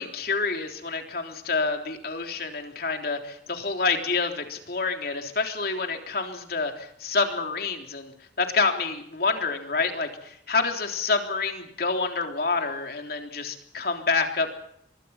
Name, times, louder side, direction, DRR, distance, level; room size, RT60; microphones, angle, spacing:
voice 1, 0.0-14.5, left 4 dB, 60° left, 4 dB, 3.5 m, -28 dB
24.0 x 23.5 x 5.8 m, 0.71 s
head